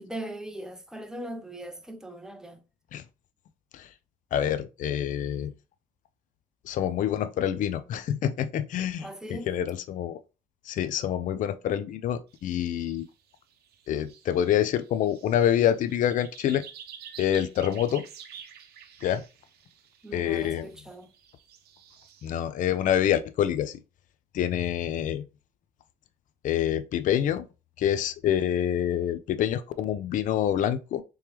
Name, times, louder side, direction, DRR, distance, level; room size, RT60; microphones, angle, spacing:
voice 1, 0.0-2.6 9.0-9.5 20.0-21.1, right 1 dB, 5° right, 0.5 m, -39 dB
voice 2, 4.3-5.5 6.7-10.2 10.7-13.1 13.9-16.6 17.2-18.0 19.0-19.2 20.1-20.7 22.2-23.8 24.3-25.2 26.4-27.4 27.8-31.0, left 10 dB, 50° left, 0.4 m, -26 dB
sound 1, 12.3-13.0 13.3-22.4, right 8 dB, 70° right, 0.7 m, -49 dB
3.4 x 3.1 x 3.0 m
cardioid pair, 110°, 17 cm